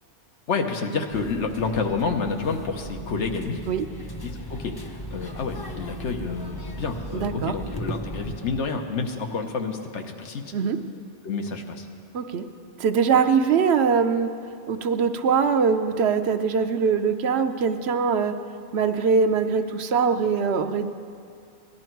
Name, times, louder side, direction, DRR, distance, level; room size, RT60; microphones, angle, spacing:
voice 1, 0.5-3.6 4.2-4.8 5.1-10.5 11.2-11.9, left 4 dB, 80° left, 4 dB, 1.3 m, -29 dB
sound 1, 1.1-8.6, equal, 25° left, 0.7 m, -37 dB
voice 2, 7.2-7.5 10.5-10.8 12.1-12.4 12.8-14.3 14.7-18.3 18.7-20.9, right 6 dB, 70° right, 8 dB, 0.9 m, -22 dB
17.5 x 11.5 x 4.5 m, 2.4 s
omnidirectional pair, 1.2 m